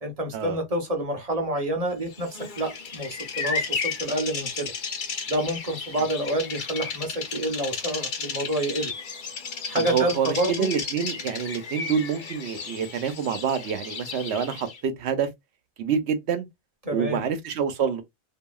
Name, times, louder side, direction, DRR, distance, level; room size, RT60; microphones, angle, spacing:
voice 1, 0.0-4.7 5.3-8.9 9.7-10.7 16.8-17.2, right 1 dB, 40° right, 0.8 m, -28 dB
Bird vocalization bird call bird song, 2.1-14.8, left 5 dB, 55° left, 0.8 m, -34 dB
voice 2, 9.7-15.3 15.8-16.5 16.9-18.0, right 7 dB, 80° right, 1.0 m, -27 dB
2.8 x 2.6 x 2.3 m
omnidirectional pair, 1.1 m